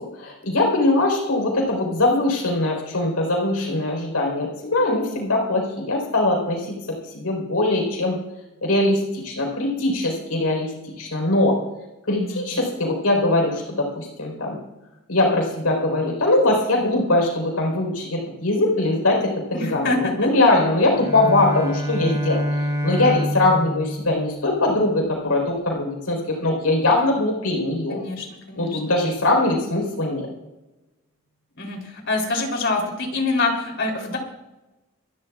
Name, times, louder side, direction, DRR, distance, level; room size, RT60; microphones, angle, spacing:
voice 1, 0.0-8.2 8.6-10.7 11.0-11.5 12.1-14.6 15.1-22.4 22.8-28.0 28.6-30.3, left 2 dB, 80° left, 1 dB, 4.5 m, -21 dB
voice 2, 12.1-12.6 19.5-20.3 27.9-28.8 31.6-34.2, left 3 dB, 55° left, 2 dB, 3.6 m, -26 dB
Bowed string instrument, 20.9-25.0, equal, 15° right, 3.1 m, -27 dB
28.0 x 12.0 x 2.5 m, 1.0 s
head